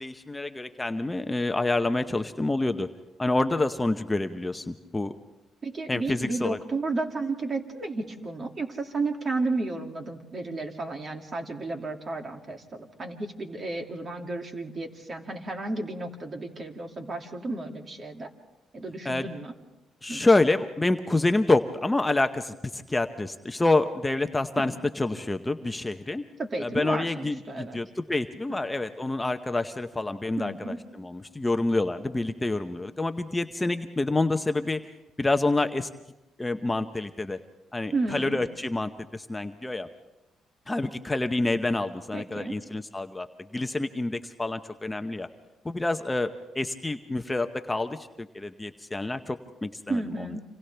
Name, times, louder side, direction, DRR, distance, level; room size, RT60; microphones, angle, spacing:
voice 1, 0.0-2.9 3.2-5.1 5.9-6.6 19.0-19.3 20.0-26.2 26.6-34.8 35.2-35.9 36.4-37.4 37.7-39.9 40.7-43.3 43.5-45.3 45.6-50.0, left 2 dB, 15° left, 7 dB, 0.8 m, -27 dB
voice 2, 5.6-18.3 18.7-19.5 20.1-20.2 24.6-24.7 26.4-27.8 28.5-28.6 30.4-30.8 37.9-38.4 42.1-42.5 49.9-50.4, right 3 dB, 40° right, 3 dB, 2.4 m, -32 dB
29.5 x 26.5 x 3.4 m, 0.99 s
cardioid pair, 90°, 0 cm